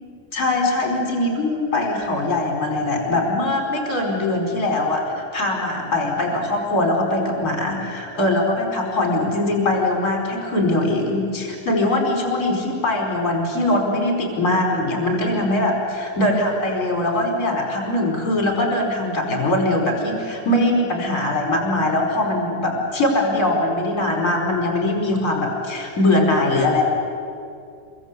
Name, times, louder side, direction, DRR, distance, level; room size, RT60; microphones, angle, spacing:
voice 1, 0.3-26.8, left 1 dB, 20° left, 1 dB, 4.9 m, -21 dB
27.0 x 23.0 x 8.3 m, 2.5 s
omnidirectional pair, 5.3 m